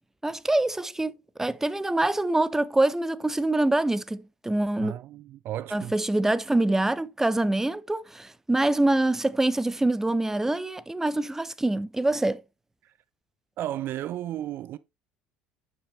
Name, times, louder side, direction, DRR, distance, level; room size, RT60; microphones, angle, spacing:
voice 1, 0.2-1.1 1.4-4.9 5.7-12.4, right 2 dB, 10° right, 0.6 m, -25 dB
voice 2, 4.8-5.9 12.8-12.9 13.6-14.8, right 12 dB, 50° right, 0.4 m, -34 dB
9.5 x 6.0 x 3.2 m
figure-of-eight pair, 65°, 5 cm